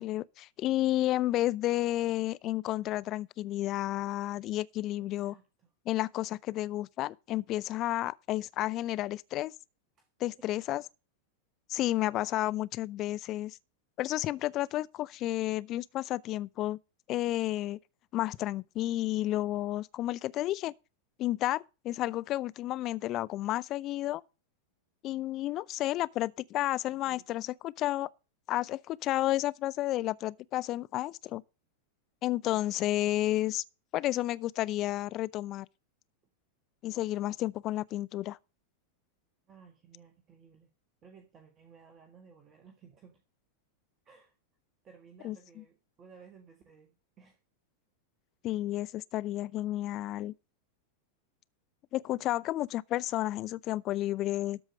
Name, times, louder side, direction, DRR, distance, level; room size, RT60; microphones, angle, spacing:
voice 1, 0.0-5.3 5.9-9.5 10.2-10.8 11.7-13.6 14.0-16.8 17.1-17.8 18.1-20.7 21.2-24.2 25.0-28.1 28.5-31.4 32.2-33.6 33.9-35.7 36.8-38.4 45.2-45.4 48.4-50.3 51.9-54.6, left 15 dB, 35° left, 0.4 m, -31 dB
voice 2, 5.0-5.7 10.0-10.1 10.4-10.5 26.9-27.5 32.5-33.2 39.5-40.7 41.0-43.2 44.0-44.3 44.8-47.4 48.8-48.9, right 6 dB, 30° right, 1.6 m, -57 dB
13.0 x 4.7 x 6.3 m
figure-of-eight pair, 90°, 0 cm